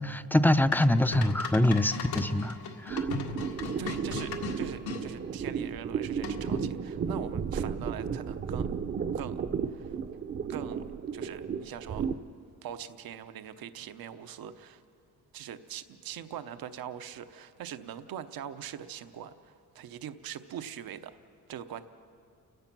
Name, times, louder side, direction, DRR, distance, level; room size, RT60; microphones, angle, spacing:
voice 1, 0.0-2.5 2.8-3.1, left 1 dB, 5° left, 11 dB, 0.5 m, -24 dB
sound 1, 0.7-5.0 6.2-6.6, left 5 dB, 90° left, 1.9 m, -37 dB
sound 2, 2.9-12.1, right 6 dB, 35° right, 0.7 m, -33 dB
voice 2, 3.8-8.7 9.1-10.0 10.5-12.1 12.6-14.8 15.3-21.2 21.5-21.8, right 9 dB, 75° right, 10 dB, 0.9 m, -42 dB
30.0 x 16.0 x 6.1 m, 2.5 s
cardioid pair, 120°, 36 cm